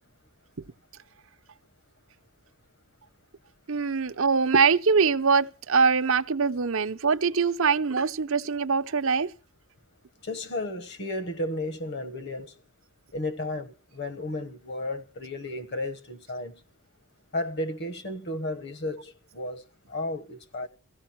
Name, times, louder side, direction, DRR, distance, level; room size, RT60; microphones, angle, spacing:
voice 1, 3.7-9.3, right 5 dB, 65° right, 0.7 m, -23 dB
voice 2, 10.2-12.5 13.1-16.5 17.3-20.7, left 1 dB, 50° left, 1.3 m, -33 dB
17.5 x 15.0 x 4.6 m
head